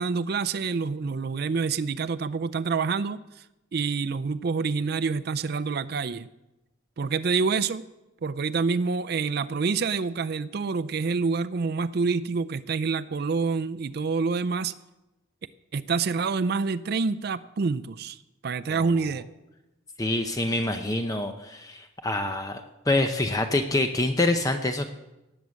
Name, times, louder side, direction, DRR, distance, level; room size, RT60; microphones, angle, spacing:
voice 1, 0.0-3.4 3.7-6.3 7.0-7.8 8.2-14.7 15.7-18.2 18.4-19.2, right 4 dB, 50° right, 13 dB, 0.4 m, -27 dB
voice 2, 20.0-22.6 22.9-24.9, left 2 dB, 15° left, 6 dB, 0.6 m, -26 dB
17.5 x 8.1 x 6.3 m, 0.99 s
head